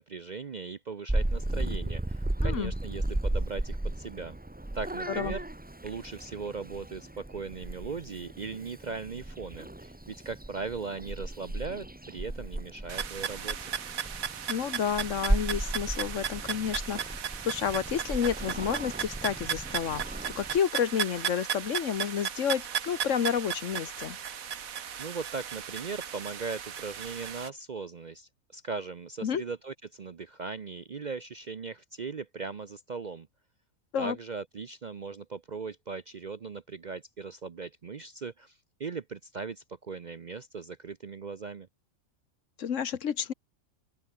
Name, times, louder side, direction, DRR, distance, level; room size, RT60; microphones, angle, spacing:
voice 1, 0.0-4.4 4.7-5.4 5.8-13.7 25.0-33.3 34.0-41.7, right 4 dB, 45° right, 0.6 m, -39 dB
Purr / Meow, 1.1-20.6, right 1 dB, 10° right, 0.7 m, -35 dB
voice 2, 2.4-2.7 5.2-5.3 14.5-20.0 20.4-24.2 29.2-29.4 33.9-34.2 42.6-43.3, left 8 dB, 65° left, 1.4 m, -30 dB
sound 1, 12.9-27.5, right 8 dB, 90° right, 1.6 m, -36 dB
open air
omnidirectional pair, 1.4 m